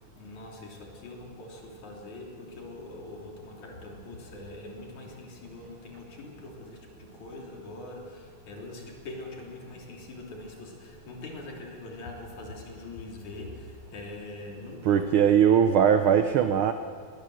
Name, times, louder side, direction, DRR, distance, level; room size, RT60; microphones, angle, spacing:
voice 1, 0.1-15.3 15.7-16.2, left 2 dB, 80° left, 0 dB, 4.6 m, -43 dB
voice 2, 14.9-16.7, right 8 dB, 85° right, 9 dB, 1.1 m, -20 dB
20.5 x 19.5 x 7.7 m, 2.1 s
omnidirectional pair, 3.3 m